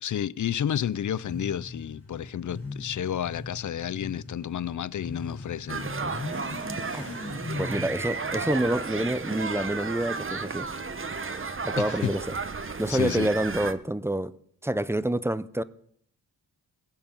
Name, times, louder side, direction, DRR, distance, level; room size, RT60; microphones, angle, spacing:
voice 1, 0.0-5.9 11.8-12.1 12.6-13.3, left 9 dB, 45° left, 0.5 m, -31 dB
Motorcycle / Accelerating revving vroom, 0.9-9.7, left 3 dB, 80° left, 4.1 m, -40 dB
sound 1, 5.7-13.7, right 4 dB, 30° right, 0.9 m, -33 dB
voice 2, 7.6-10.7 11.6-12.2 12.8-14.3 14.6-15.6, right 1 dB, 5° right, 0.5 m, -27 dB
21.5 x 7.2 x 5.2 m
cardioid pair, 75°, 42 cm